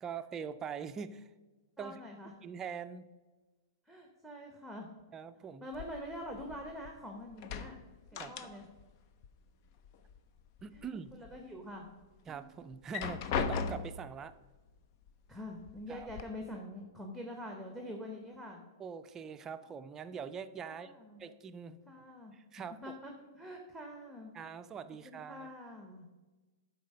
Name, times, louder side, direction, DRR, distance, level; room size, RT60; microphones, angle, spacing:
voice 1, 0.0-1.3 1.8-2.0 2.4-3.1 5.1-5.7 8.1-8.3 10.6-11.1 12.3-14.3 15.9-16.1 18.8-20.9 21.2-22.0 22.3-22.9 24.3-25.5, right 6 dB, 20° right, 10 dB, 0.5 m, -43 dB
voice 2, 1.8-2.3 3.9-4.9 5.6-7.8 8.1-8.6 10.7-10.8 11.1-11.9 15.3-18.7 20.6-21.2 21.9-22.3 22.8-24.3 25.0-26.1, left 1 dB, ahead, 2 dB, 1.0 m, -45 dB
sound 1, 5.7-7.0 7.3-8.9 9.2-10.2 10.6-11.4 11.9-12.0 12.7-14.1 15.1-15.2 15.6-16.2, left 6 dB, 45° left, 0.6 m, -38 dB
10.5 x 4.1 x 5.4 m, 1.2 s
hypercardioid pair, 115°, 2 cm